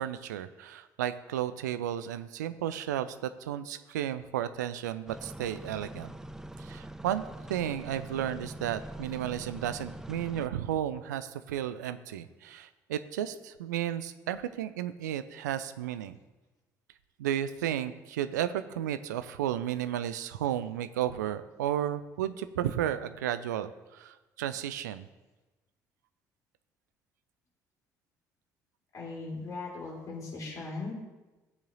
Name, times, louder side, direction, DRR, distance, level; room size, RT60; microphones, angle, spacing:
voice 1, 0.0-6.1 6.6-7.2 7.5-16.2 17.2-25.1, right 11 dB, 75° right, 12 dB, 0.4 m, -33 dB
sound 1, 5.1-10.5, right 1 dB, 5° right, 0.4 m, -43 dB
voice 2, 28.9-30.9, left 3 dB, 35° left, -5 dB, 3.3 m, -38 dB
15.5 x 7.4 x 2.6 m, 1.1 s
figure-of-eight pair, 50°, 10 cm